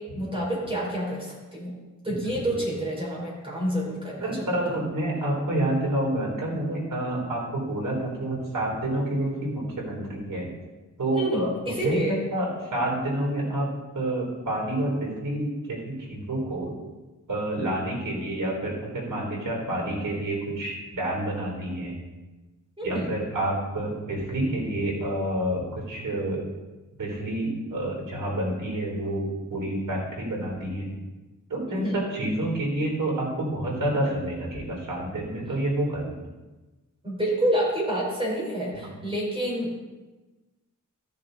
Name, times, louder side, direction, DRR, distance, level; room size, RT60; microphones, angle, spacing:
voice 1, 0.0-1.8 2.0-4.4 11.1-12.2 22.8-23.1 31.7-32.0 37.0-39.8, right 1 dB, 15° right, -5 dB, 4.1 m, -28 dB
voice 2, 2.2-2.6 4.2-10.5 11.0-16.7 17.3-22.0 22.8-26.4 27.0-31.0 31.5-36.2 38.7-38.9, right 1 dB, 80° right, -2 dB, 3.9 m, -28 dB
14.5 x 6.7 x 4.0 m, 1.2 s
wide cardioid pair, 105°, 31 cm